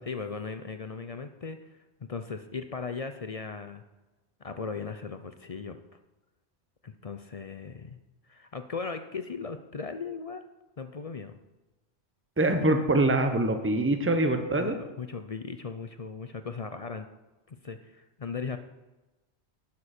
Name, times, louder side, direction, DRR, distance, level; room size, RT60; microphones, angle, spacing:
voice 1, 0.1-1.6 2.1-3.8 4.4-5.8 6.8-8.0 8.3-10.5 10.8-11.4 14.5-17.1 17.5-18.6, left 5 dB, 45° left, 8 dB, 0.5 m, -37 dB
voice 2, 12.4-14.8, right 2 dB, 15° right, 6 dB, 0.9 m, -24 dB
11.5 x 9.7 x 4.3 m, 1.1 s
omnidirectional pair, 1.1 m